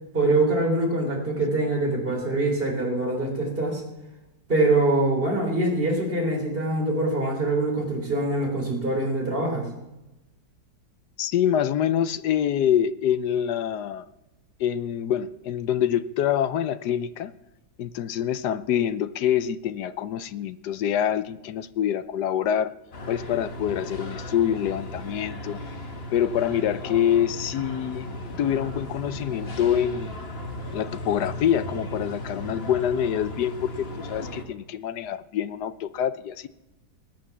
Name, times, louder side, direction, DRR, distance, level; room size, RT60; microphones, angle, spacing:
voice 1, 0.1-3.8 4.5-9.7, right 2 dB, 30° right, 1 dB, 4.0 m, -24 dB
voice 2, 11.2-14.0 14.6-17.3 17.8-22.7 23.1-25.6 26.1-28.1 28.4-30.2 30.7-36.5, left 10 dB, 70° left, 15 dB, 1.2 m, -26 dB
sound 1, 22.9-34.4, left 1 dB, 35° left, 1.5 m, -36 dB
19.5 x 9.1 x 7.3 m, 0.97 s
omnidirectional pair, 2.0 m